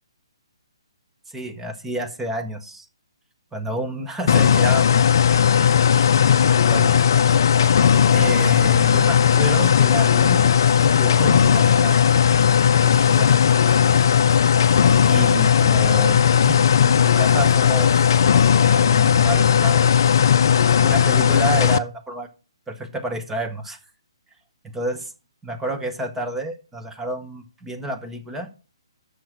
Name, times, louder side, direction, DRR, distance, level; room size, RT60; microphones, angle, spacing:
voice 1, 1.3-2.9 3.5-5.1 6.7-6.9 8.1-12.0 12.8-13.4 15.1-18.2 18.6-20.0 20.8-22.3 22.7-23.8 24.7-25.1 25.4-28.5, right 1 dB, 5° right, 4 dB, 0.9 m, -30 dB
sound 1, 4.3-21.8, left 8 dB, 45° left, 0.5 m, -16 dB
7.6 x 6.4 x 6.1 m, 0.34 s
figure-of-eight pair, 130°, 3 cm